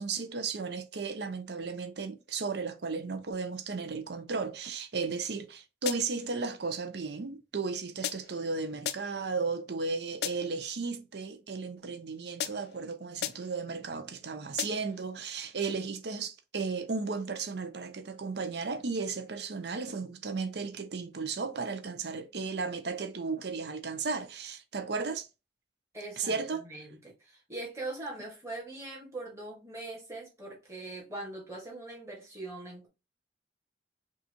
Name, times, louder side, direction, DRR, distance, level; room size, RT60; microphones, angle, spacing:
voice 1, 0.0-25.3 26.2-26.6, right 4 dB, 65° right, 0.6 m, -35 dB
sound 1, 5.9-6.3 8.0-8.5 8.8-9.3 10.2-10.6 12.4-12.8 13.2-13.6 14.6-15.0, left 10 dB, 60° left, 0.4 m, -37 dB
voice 2, 25.9-32.9, right 2 dB, 15° right, 1.6 m, -42 dB
5.4 x 2.5 x 2.8 m
head